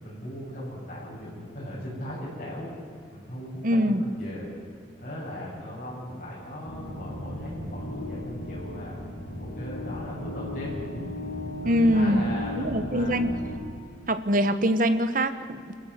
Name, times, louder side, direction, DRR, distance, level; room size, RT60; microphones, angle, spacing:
voice 1, 0.0-2.7 3.1-4.5 5.0-9.0 9.4-10.8 11.6-13.2, equal, 40° left, -7 dB, 7.9 m, -38 dB
voice 2, 3.6-4.0 11.6-12.3 12.6-13.4 14.1-15.8, equal, 45° right, 11 dB, 1.2 m, -23 dB
sound 1, 6.6-13.6, left 1 dB, 60° left, 5.8 m, -36 dB
26.0 x 14.5 x 8.2 m, 2.3 s
head